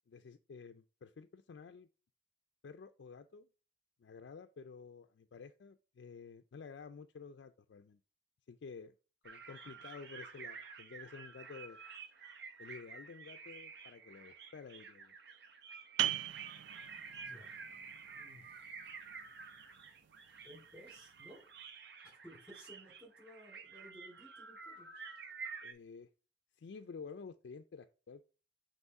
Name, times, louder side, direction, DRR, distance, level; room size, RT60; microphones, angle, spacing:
voice 1, 0.1-1.9 2.6-3.5 4.0-8.0 8.5-8.9 9.2-11.8 12.6-15.1 25.6-26.1 26.6-28.3, left 5 dB, 70° left, 0.4 m, -51 dB
sound 1, 9.2-25.7, right 5 dB, 65° right, 0.9 m, -50 dB
sound 2, 16.0-21.3, right 12 dB, 90° right, 0.3 m, -42 dB
voice 2, 18.1-18.6 20.4-21.4 22.0-25.0, equal, 5° right, 3.7 m, -57 dB
8.0 x 3.0 x 4.7 m
head